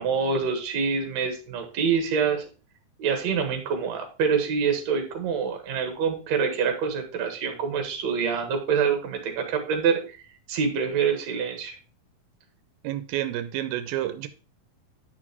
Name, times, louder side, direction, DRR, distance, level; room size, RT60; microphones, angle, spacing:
voice 1, 0.0-2.4 3.0-10.2 10.5-11.7, right 6 dB, 55° right, 4 dB, 2.4 m, -26 dB
voice 2, 12.8-14.3, right 13 dB, 85° right, 10 dB, 2.4 m, -29 dB
9.9 x 6.0 x 3.0 m, 0.34 s
omnidirectional pair, 4.2 m